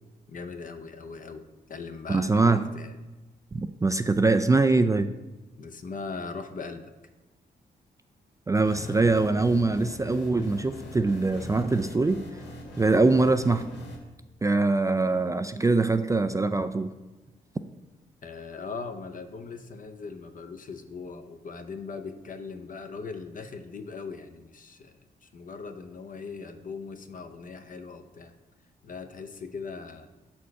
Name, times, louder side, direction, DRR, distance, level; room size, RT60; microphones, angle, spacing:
voice 1, 0.3-3.0 5.6-6.9 18.2-28.3 28.8-30.1, left 4 dB, 50° left, 8 dB, 0.7 m, -40 dB
voice 2, 2.1-2.6 3.5-5.1 8.5-12.2 12.8-13.7 14.4-16.9, right 3 dB, 20° right, 9 dB, 0.3 m, -23 dB
sound 1, 8.6-14.0, left 1 dB, 85° left, 1.3 m, -42 dB
6.4 x 4.3 x 4.7 m, 1.1 s
cardioid pair, 60°, 18 cm